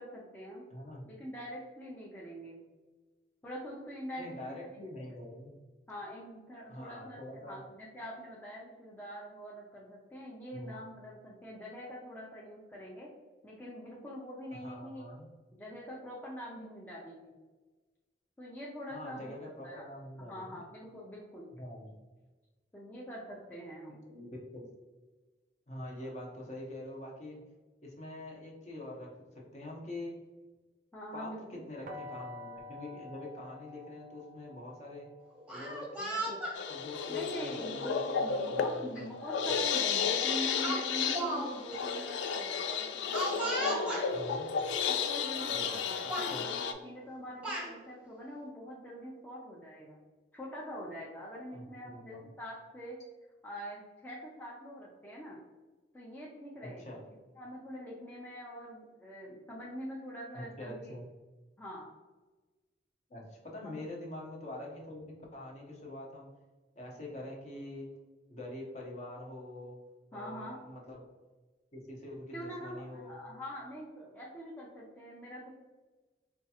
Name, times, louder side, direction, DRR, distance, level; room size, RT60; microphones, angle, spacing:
voice 1, 0.0-0.6 1.1-2.6 3.4-4.6 5.9-13.1 13.4-15.1 15.5-17.3 18.4-19.3 19.6-19.8 20.2-21.5 22.7-24.0 26.0-26.1 30.9-31.6 37.1-44.1 44.9-50.0 50.3-53.0 53.4-55.4 55.9-57.0 57.4-60.9 61.6-61.9 63.6-63.8 70.1-70.6 72.3-75.5, equal, 10° left, -5 dB, 0.4 m, -44 dB
voice 2, 0.7-1.0 4.2-5.5 6.7-7.6 10.5-10.7 14.5-15.3 18.9-20.6 21.5-21.9 24.1-24.7 25.7-27.4 27.8-30.1 31.1-35.1 35.5-36.4 36.7-39.1 44.1-44.5 46.0-46.5 51.5-52.3 56.6-57.1 60.3-61.0 63.1-66.3 66.8-67.9 68.3-69.8 70.1-71.0 71.7-73.2, left 1 dB, 40° left, -2 dB, 0.8 m, -45 dB
sound 1, 31.9-37.7, left 2 dB, 50° right, 0.5 m, -49 dB
Speech, 35.4-36.6 37.5-37.7 39.0-39.1 39.4-39.7 40.6-41.5 41.7-41.8 43.1-44.1 45.0-45.1 45.4-45.8 46.1-46.3 47.1-47.7, right 1 dB, 5° right, 0.8 m, -36 dB
sound 2, 36.5-46.7, left 6 dB, 90° left, 0.3 m, -33 dB
4.3 x 2.3 x 2.8 m, 1.2 s
head